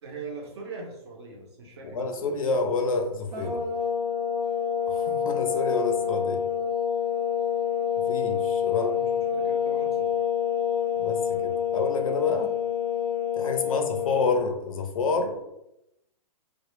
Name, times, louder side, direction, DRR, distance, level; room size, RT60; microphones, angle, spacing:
voice 1, 0.0-2.1 8.7-10.1 13.6-13.9, right 3 dB, 40° right, 0 dB, 0.6 m, -41 dB
voice 2, 1.8-3.6 4.9-6.5 8.0-8.9 11.0-12.5 13.3-15.4, left 4 dB, 55° left, 4 dB, 0.4 m, -28 dB
sound 1, 3.3-14.4, left 8 dB, 85° right, 0.6 m, -27 dB
2.1 x 2.0 x 2.9 m, 0.86 s
hypercardioid pair, 175°, 21 cm